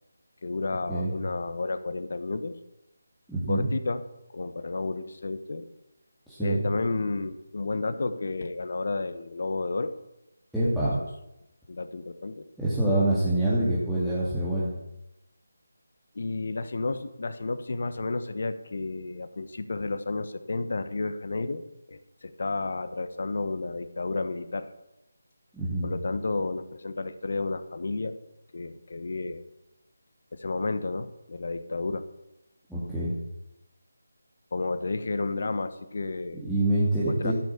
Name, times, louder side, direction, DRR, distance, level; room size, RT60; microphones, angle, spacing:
voice 1, 0.4-2.6 3.5-4.0 4.3-5.6 6.4-9.9 11.0-11.1 11.7-12.5 16.1-21.6 21.9-24.7 25.8-28.2 28.5-29.4 30.3-32.0 34.5-36.4 37.0-37.3, left 3 dB, 55° left, 11 dB, 1.3 m, -31 dB
voice 2, 3.3-3.7 6.3-6.6 10.5-11.0 12.6-14.7 25.5-25.9 32.7-33.1 36.4-37.3, right 1 dB, ahead, -13 dB, 2.5 m, -26 dB
14.0 x 8.8 x 7.1 m, 0.89 s
figure-of-eight pair, 160°, 0 cm